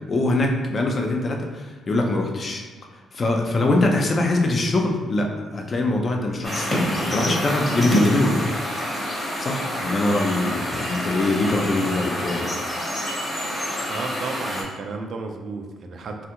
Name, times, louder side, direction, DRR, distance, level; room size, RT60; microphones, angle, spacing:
voice 1, 0.1-2.6 3.1-8.5 9.4-12.5, left 2 dB, 40° left, 2 dB, 0.5 m, -23 dB
sound 1, 6.4-14.6, equal, 25° left, 0.9 m, -27 dB
voice 2, 13.9-16.3, right 4 dB, 55° right, 4 dB, 0.4 m, -33 dB
3.2 x 2.3 x 2.9 m, 1.4 s
cardioid pair, 90°, 0 cm